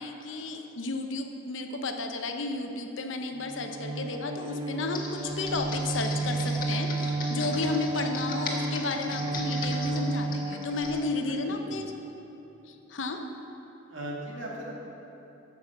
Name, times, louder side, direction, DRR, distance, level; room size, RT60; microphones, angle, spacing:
voice 1, 0.0-11.9 12.7-13.2, left 3 dB, 75° left, 5 dB, 0.8 m, -33 dB
Bowed string instrument, 3.4-11.8, right 2 dB, 25° right, 0.5 m, -32 dB
Computer keyboard, 4.9-11.0, left 3 dB, 50° left, 1.4 m, -38 dB
voice 2, 11.4-11.8 13.9-14.7, right 1 dB, 85° right, -4 dB, 2.2 m, -38 dB
8.8 x 7.0 x 7.1 m, 3.0 s
head